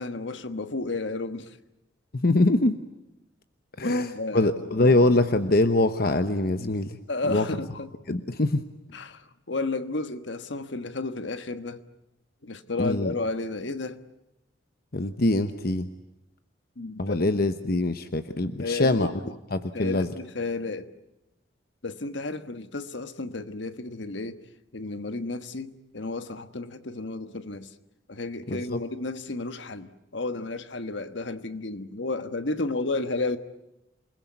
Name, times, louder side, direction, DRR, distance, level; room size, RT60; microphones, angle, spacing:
voice 1, 0.0-1.6 3.8-4.5 7.1-7.9 8.9-11.8 12.4-14.0 16.8-17.2 18.6-19.3 19.7-20.9 21.8-24.4 24.7-27.7 28.1-33.4, left 3 dB, 70° left, 1.4 m, -32 dB
voice 2, 2.1-2.8 3.8-7.0 7.3-7.5 8.1-8.6 12.8-13.1 14.9-15.9 17.0-19.1 19.5-20.1 28.5-28.6, left 2 dB, 50° left, 1.0 m, -23 dB
28.0 x 20.5 x 9.4 m
head